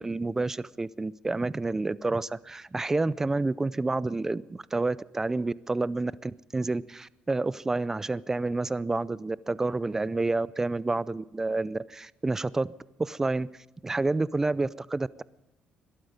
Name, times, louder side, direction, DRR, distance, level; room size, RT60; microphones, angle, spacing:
voice 1, 0.0-12.7 13.0-13.5 13.8-15.2, right 3 dB, 15° right, 20 dB, 0.5 m, -29 dB
22.0 x 12.5 x 5.1 m, 0.96 s
cardioid pair, 105°, 3 cm